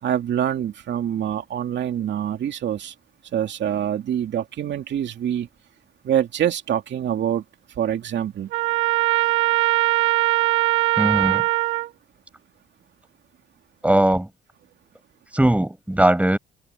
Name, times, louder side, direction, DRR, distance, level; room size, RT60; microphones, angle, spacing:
voice 1, 0.0-2.9 3.3-5.5 6.0-7.4 7.8-8.5, right 10 dB, 65° right, 2.6 m, -25 dB
Trumpet, 8.5-11.9, right 18 dB, 85° right, 1.5 m, -20 dB
voice 2, 11.0-11.4 13.8-14.3 15.3-16.4, right 1 dB, 5° right, 5.7 m, -19 dB
cardioid pair, 90°, 20 cm